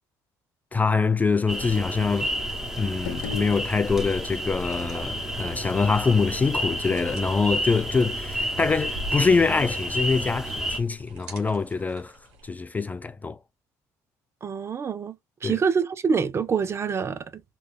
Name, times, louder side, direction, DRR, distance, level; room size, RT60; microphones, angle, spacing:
voice 1, 0.7-2.3 2.8-12.2 12.4-13.4 15.4-15.6, left 4 dB, 20° left, 0.3 m, -24 dB
sound 1, 1.5-10.8, equal, 5° right, 1.2 m, -31 dB
sound 2, 2.9-4.3, left 7 dB, 80° left, 0.6 m, -38 dB
sound 3, 6.8-12.5, right 1 dB, 85° right, 1.2 m, -45 dB
voice 2, 14.4-15.2 15.4-17.4, right 6 dB, 35° right, 0.6 m, -26 dB
3.2 x 2.4 x 3.2 m
supercardioid pair, 85°, 8 cm